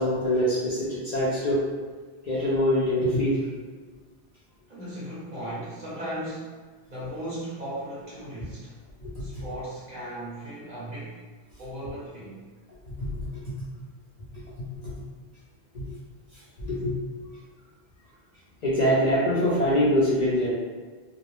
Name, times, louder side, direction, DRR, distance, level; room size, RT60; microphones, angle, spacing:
voice 1, 0.0-1.6 2.3-3.4 9.0-9.4 12.9-13.1 14.7-14.9 15.7-15.9 16.6-17.0 18.6-20.5, equal, 55° left, -9 dB, 0.5 m, -24 dB
voice 2, 4.7-8.8 9.2-11.2 11.6-12.4, right 1 dB, 45° right, -8 dB, 0.7 m, -37 dB
2.2 x 2.0 x 2.9 m, 1.4 s
omnidirectional pair, 1.2 m